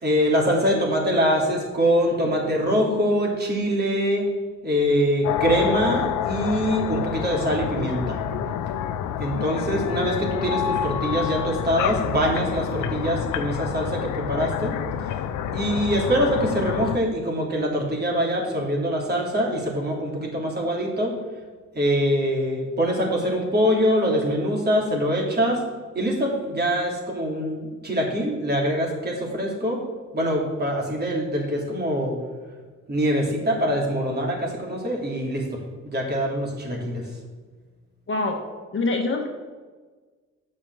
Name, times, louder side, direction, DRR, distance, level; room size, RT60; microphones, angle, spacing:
voice 1, 0.0-4.3 4.6-8.2 8.4-8.5 9.2-14.7 15.5-21.1 21.7-25.6 25.9-29.8 30.1-32.2 32.9-37.0, equal, 35° right, -2 dB, 3.1 m, -24 dB
sound 1, 5.2-17.0, left 9 dB, 90° left, 0.7 m, -28 dB
voice 2, 38.7-39.3, left 3 dB, 40° left, 2 dB, 1.4 m, -24 dB
9.0 x 6.3 x 6.5 m, 1.4 s
cardioid pair, 90°, 30 cm